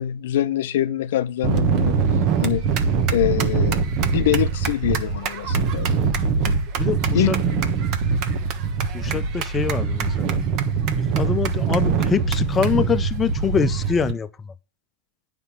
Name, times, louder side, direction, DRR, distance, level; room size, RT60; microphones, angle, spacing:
voice 1, 0.0-2.0 2.4-2.7 3.1-3.8 4.1-5.9 7.1-7.3, left 12 dB, 75° left, 0.7 m, -24 dB
sound 1, 1.4-14.1, right 5 dB, 50° right, 1.3 m, -23 dB
voice 2, 6.8-7.4 8.9-10.4 11.0-14.3, left 7 dB, 25° left, 0.8 m, -24 dB
9.7 x 5.3 x 7.4 m
hypercardioid pair, 110°, 0 cm